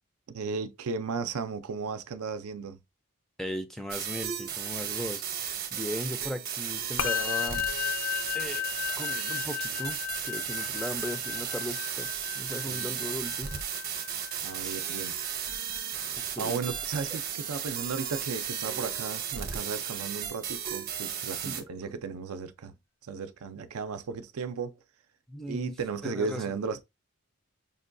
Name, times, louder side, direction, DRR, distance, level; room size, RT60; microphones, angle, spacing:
voice 1, 0.3-2.8 12.7-12.9 14.4-15.2 16.4-22.7 23.1-24.8 25.5-26.8, right 5 dB, 80° right, 0.5 m, -35 dB
voice 2, 3.4-7.6 8.3-8.7 9.0-10.0 10.2-12.1 12.3-13.5 14.6-14.8 16.1-16.6 21.3-22.0 25.3-25.7 26.0-26.5, equal, ahead, 0.4 m, -38 dB
sound 1, 3.9-21.6, right 9 dB, 45° right, 0.7 m, -35 dB
Musical instrument, 7.0-16.5, left 11 dB, 60° left, 0.5 m, -35 dB
5.2 x 2.3 x 2.5 m
head